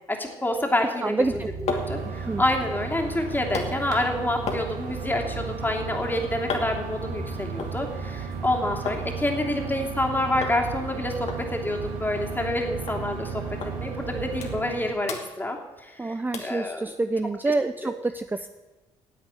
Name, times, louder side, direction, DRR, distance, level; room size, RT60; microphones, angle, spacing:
voice 1, 0.1-1.4 1.7-13.4 13.8-16.8 17.5-17.6 17.8-17.9, left 1 dB, 15° left, 2 dB, 2.9 m, -28 dB
voice 2, 1.0-1.5 2.0-2.4 16.0-18.5, right 3 dB, 15° right, 10 dB, 0.6 m, -27 dB
sound 1, 1.2-14.6, right 5 dB, 45° right, 3.9 m, -36 dB
sound 2, 1.4-9.1 9.4-10.0 10.4-10.6 10.9-11.0 11.3-12.6 12.9-13.0 13.6-13.7 14.1-14.8 15.0-16.0 16.3-16.6 17.1-17.2, left 4 dB, 55° left, 2.4 m, -37 dB
sound 3, 1.7-14.9, right 8 dB, 75° right, 2.2 m, -39 dB
10.5 x 8.2 x 9.2 m, 1.2 s
supercardioid pair, 60°, 13 cm